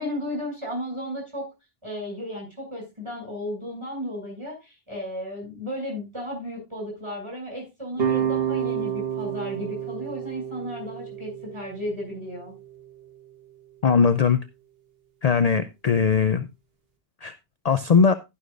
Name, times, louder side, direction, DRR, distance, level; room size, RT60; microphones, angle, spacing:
voice 1, 0.0-1.5 1.8-12.5, left 1 dB, 30° right, -1 dB, 6.8 m, -34 dB
sound 1, 8.0-13.1, right 9 dB, 70° right, 1.5 m, -30 dB
voice 2, 13.8-14.4 15.2-16.5 17.2-17.3 17.6-18.1, left 6 dB, 45° left, 11 dB, 0.6 m, -19 dB
11.5 x 11.5 x 2.5 m, 0.24 s
omnidirectional pair, 1.0 m